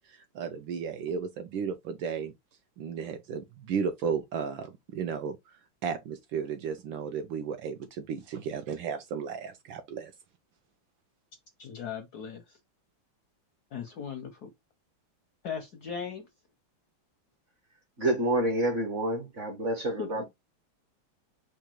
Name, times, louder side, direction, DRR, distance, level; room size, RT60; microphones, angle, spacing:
voice 1, 0.0-2.3 2.8-10.1, right 6 dB, 75° right, 1.2 m, -34 dB
voice 2, 11.6-12.6 13.7-14.5 15.4-16.3 20.0-20.2, left 7 dB, 70° left, 0.9 m, -38 dB
voice 3, 18.0-20.2, right 1 dB, 45° right, 1.1 m, -28 dB
5.1 x 2.3 x 4.5 m
omnidirectional pair, 2.4 m